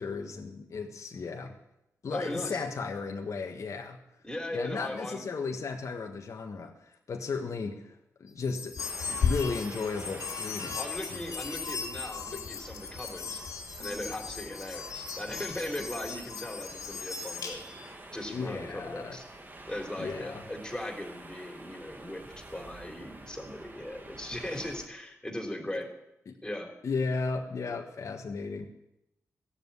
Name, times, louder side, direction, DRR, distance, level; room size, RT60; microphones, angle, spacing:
voice 1, 0.0-1.6 2.0-4.0 4.5-7.9 8.2-10.8 11.1-11.2 18.3-19.2 20.0-20.4 26.3-26.4 26.8-28.7, left 4 dB, 65° left, 3 dB, 1.4 m, -35 dB
voice 2, 2.1-2.6 4.2-5.2 10.7-13.4 13.8-17.6 18.1-19.2 19.7-25.9 26.4-26.7, left 1 dB, 15° left, 2 dB, 3.4 m, -38 dB
sound 1, 8.4-17.9, left 5 dB, 80° left, 2.6 m, -36 dB
sound 2, 8.8-24.9, right 2 dB, 35° right, 2.1 m, -48 dB
15.0 x 7.4 x 9.7 m, 0.86 s
cardioid pair, 70°, 6 cm